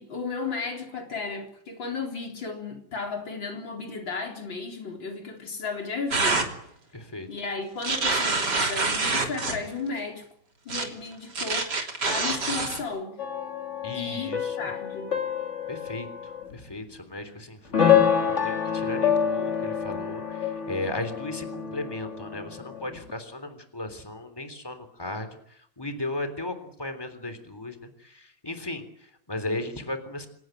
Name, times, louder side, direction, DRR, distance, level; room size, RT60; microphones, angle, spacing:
voice 1, 0.0-6.5 7.3-10.3 10.6-13.2 13.9-14.3 14.6-15.1, left 4 dB, 75° left, 3 dB, 4.6 m, -34 dB
sound 1, 6.1-6.5 7.8-9.6 10.7-10.8 11.3-12.8, right 3 dB, 60° right, 3.8 m, -26 dB
voice 2, 6.9-7.3 13.8-14.7 15.7-28.8 29.3-30.3, left 2 dB, 10° left, 9 dB, 3.5 m, -36 dB
sound 2, 13.2-16.6 17.7-23.1, left 8 dB, 35° left, 2.7 m, -27 dB
26.5 x 18.5 x 9.2 m, 0.69 s
omnidirectional pair, 2.1 m